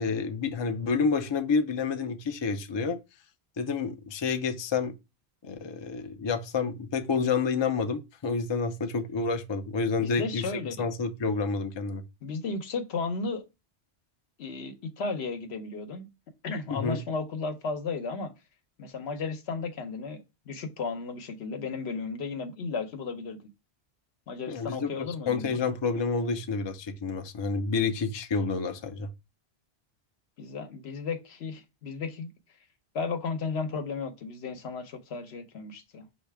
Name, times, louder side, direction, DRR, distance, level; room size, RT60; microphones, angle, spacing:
voice 1, 0.0-3.0 3.6-4.9 5.4-10.5 10.8-12.0 16.7-17.0 24.5-29.1, left 4 dB, 35° left, 0.4 m, -29 dB
voice 2, 10.0-10.8 12.2-13.4 14.4-16.1 16.4-18.3 18.8-23.4 24.3-25.7 30.4-32.3 32.9-36.1, left 4 dB, 80° left, 1.0 m, -34 dB
5.5 x 2.8 x 3.4 m
omnidirectional pair, 1.1 m